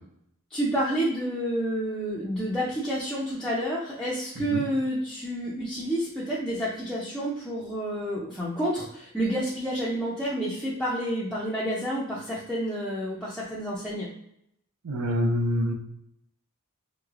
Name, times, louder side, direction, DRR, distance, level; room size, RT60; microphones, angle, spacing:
voice 1, 0.5-14.1, equal, 5° left, -7 dB, 0.4 m, -29 dB
voice 2, 14.8-15.7, equal, 75° right, 4 dB, 0.5 m, -26 dB
3.1 x 3.1 x 2.4 m, 0.77 s
head